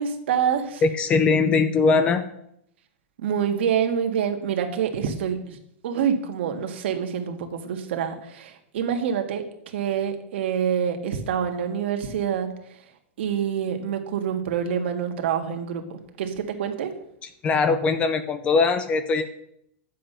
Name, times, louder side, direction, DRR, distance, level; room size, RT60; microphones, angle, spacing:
voice 1, 0.0-0.8 3.2-5.6 5.8-12.9 13.2-16.9, right 8 dB, 60° right, 5 dB, 1.7 m, -26 dB
voice 2, 0.8-2.2 17.4-19.3, left 4 dB, 15° left, 11 dB, 0.5 m, -21 dB
11.0 x 7.6 x 5.6 m, 0.75 s
supercardioid pair, 170°, 7 cm